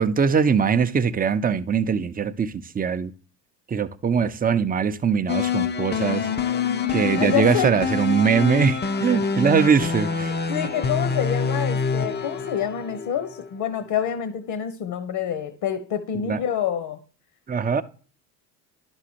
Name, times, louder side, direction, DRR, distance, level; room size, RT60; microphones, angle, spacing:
voice 1, 0.0-3.1 3.7-6.2 6.9-10.3 16.2-16.4 17.5-17.8, right 6 dB, 20° right, 0.7 m, -22 dB
sound 1, 5.3-13.5, left 5 dB, 20° left, 0.7 m, -26 dB
voice 2, 7.2-7.7 10.3-17.0, left 9 dB, 50° left, 1.3 m, -27 dB
11.5 x 6.3 x 2.8 m
hypercardioid pair, 65°, 50 cm